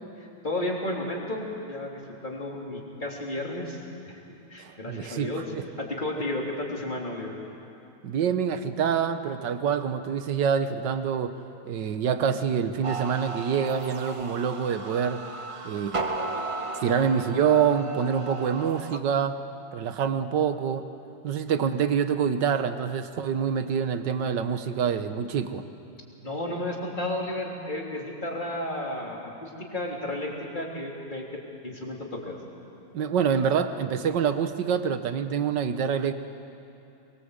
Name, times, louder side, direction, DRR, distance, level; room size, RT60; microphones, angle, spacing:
voice 1, 0.2-3.8 4.5-5.5 5.8-7.4 26.2-32.4, left 1 dB, 25° left, -2 dB, 3.6 m, -33 dB
voice 2, 4.6-5.6 8.0-11.3 11.7-15.2 15.7-16.0 16.8-19.4 19.7-20.9 21.2-25.6 32.9-36.1, right 7 dB, 75° right, 9 dB, 1.7 m, -26 dB
sound 1, 12.8-19.0, right 3 dB, 25° right, 0.7 m, -35 dB
23.5 x 22.5 x 8.2 m, 2.8 s
omnidirectional pair, 1.9 m